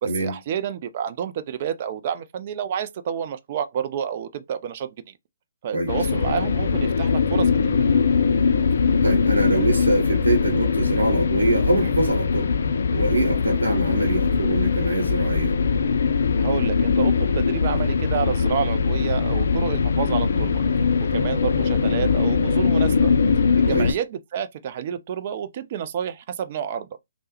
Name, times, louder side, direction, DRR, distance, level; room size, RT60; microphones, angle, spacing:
voice 1, 0.0-5.1 5.6-7.8 16.4-20.6 21.0-23.1 23.6-26.9, right 8 dB, 40° right, 0.3 m, -29 dB
sound 1, 5.9-23.9, left 5 dB, 55° left, 0.4 m, -21 dB
voice 2, 9.0-12.6 12.9-15.5 23.7-23.9, right 2 dB, 75° right, 0.8 m, -24 dB
3.2 x 2.0 x 2.9 m
figure-of-eight pair, 135°, 0 cm